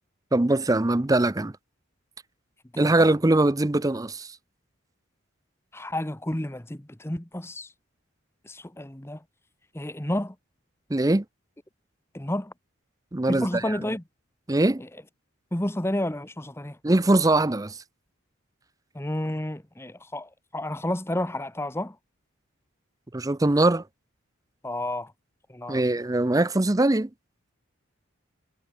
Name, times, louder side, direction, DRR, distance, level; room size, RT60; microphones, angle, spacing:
voice 1, 0.3-1.5 2.8-4.3 10.9-11.2 13.1-13.8 14.5-14.8 16.8-17.8 23.1-23.8 25.7-27.1, right 2 dB, 15° right, 0.6 m, -22 dB
voice 2, 2.7-3.1 5.7-7.7 8.4-9.2 9.7-10.3 12.1-12.5 13.3-14.0 14.8-14.9 15.5-16.8 18.9-22.0 24.6-25.1 25.5-25.8, left 1 dB, 10° left, 1.1 m, -31 dB
head